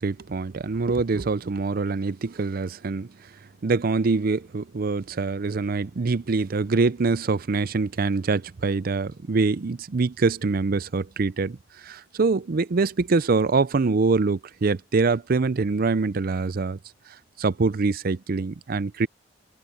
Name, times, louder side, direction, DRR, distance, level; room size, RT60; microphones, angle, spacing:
voice 1, 0.0-3.1 3.6-11.6 11.8-16.8 17.4-19.1, right 4 dB, 50° right, 0.5 m, -24 dB
open air
head